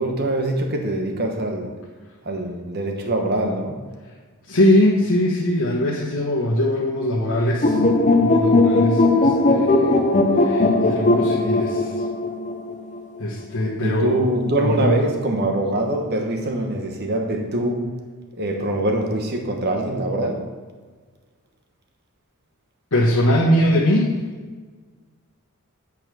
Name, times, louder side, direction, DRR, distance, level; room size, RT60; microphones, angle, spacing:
voice 1, 0.0-1.7 2.2-3.8 13.8-17.9 18.4-20.4, right 1 dB, 50° right, 3 dB, 1.2 m, -23 dB
voice 2, 4.4-10.0 10.3-12.0 13.2-14.3 14.6-15.0 22.9-24.2, left 1 dB, 80° left, -5 dB, 1.3 m, -21 dB
sound 1, 7.6-13.0, left 2 dB, 35° left, 0.7 m, -18 dB
8.8 x 4.8 x 6.2 m, 1.4 s
head